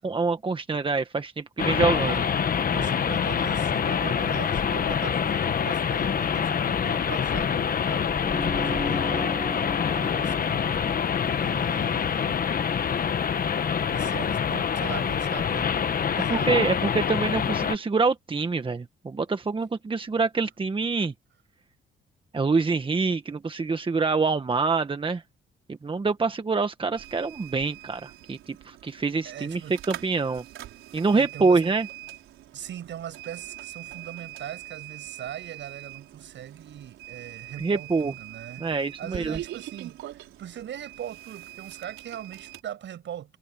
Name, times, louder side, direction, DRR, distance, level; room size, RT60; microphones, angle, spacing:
voice 1, 0.0-2.2 16.3-21.1 22.3-25.2 25.7-29.6 29.9-30.4 30.9-31.9 37.6-38.1 38.6-39.4, right 4 dB, 25° right, 1.5 m, -26 dB
sound 1, 1.6-17.8, left 7 dB, 45° left, 1.3 m, -26 dB
voice 2, 1.9-2.3 2.7-10.9 11.3-12.5 13.9-16.7 28.8-29.0 29.2-29.8 31.1-31.6 32.5-38.7 39.0-43.4, right 10 dB, 70° right, 7.4 m, -40 dB
sound 2, 8.2-13.0, equal, ahead, 5.1 m, -38 dB
sound 3, 26.9-42.6, right 14 dB, 85° right, 4.5 m, -43 dB
cardioid pair, 90°, 20 cm